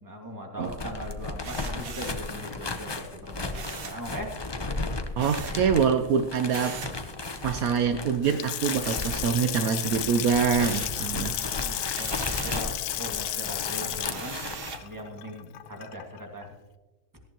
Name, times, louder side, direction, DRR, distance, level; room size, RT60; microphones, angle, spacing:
voice 1, 0.0-4.3 10.9-14.4 14.8-16.5, equal, 10° right, 1 dB, 1.9 m, -40 dB
sound 1, 0.6-14.8, left 2 dB, 30° left, 0.5 m, -35 dB
sound 2, 1.4-2.3 3.5-4.0 5.2-5.6 6.5-7.0 8.8-9.6 10.0-11.0 11.9-12.7 14.0-14.9, right 7 dB, 50° right, 0.8 m, -41 dB
voice 2, 5.2-6.8 7.4-11.7 12.3-12.4, right 7 dB, 70° right, 9 dB, 1.1 m, -25 dB
Water tap faucet / Sink (filling or washing) / Splash splatter, 8.1-16.2, left 13 dB, 80° left, 1.1 m, -33 dB
17.5 x 14.5 x 2.9 m, 1.1 s
omnidirectional pair, 1.6 m